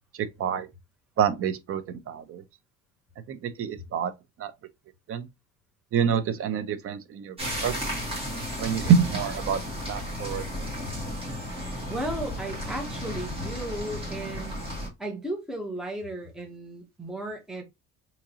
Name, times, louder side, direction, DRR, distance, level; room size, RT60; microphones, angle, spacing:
voice 1, 0.1-0.7 1.2-2.4 3.3-4.1 4.4-4.5 5.1-5.3 5.9-7.9 8.6-9.6 9.9-10.7, right 7 dB, 45° right, 0.6 m, -27 dB
sound 1, 7.4-14.9, equal, 20° right, 1.8 m, -34 dB
voice 2, 11.9-14.6 15.0-17.6, right 1 dB, ahead, 0.9 m, -35 dB
3.7 x 2.9 x 2.8 m
cardioid pair, 140°, 31 cm